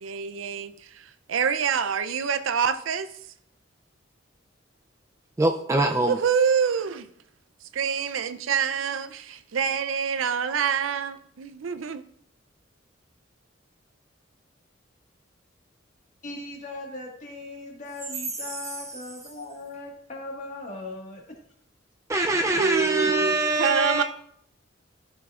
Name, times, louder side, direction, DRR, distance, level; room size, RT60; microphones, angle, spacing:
voice 1, 0.0-3.1 6.0-7.1 7.7-12.0 22.5-24.0, right 7 dB, 90° right, 0.5 m, -26 dB
voice 2, 5.4-6.2 22.1-24.0, right 2 dB, 15° right, 0.4 m, -23 dB
voice 3, 16.2-21.2, left 2 dB, 40° left, 1.7 m, -39 dB
13.5 x 5.8 x 2.4 m
head